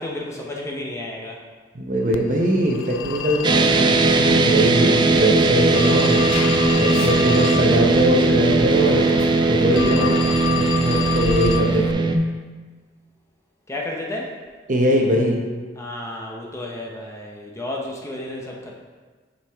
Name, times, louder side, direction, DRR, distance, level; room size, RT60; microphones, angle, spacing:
voice 1, 0.0-1.4 13.7-14.4 15.8-18.7, left 1 dB, 15° left, -1 dB, 0.6 m, -32 dB
voice 2, 1.7-6.3 6.7-9.1 9.5-12.1 14.7-15.4, right 1 dB, 40° right, 0 dB, 0.8 m, -21 dB
Telephone, 2.1-11.9, left 7 dB, 90° left, 0.3 m, -30 dB
sound 1, 3.4-12.2, right 3 dB, 25° right, 0.3 m, -19 dB
5.6 x 5.4 x 3.4 m, 1.4 s
head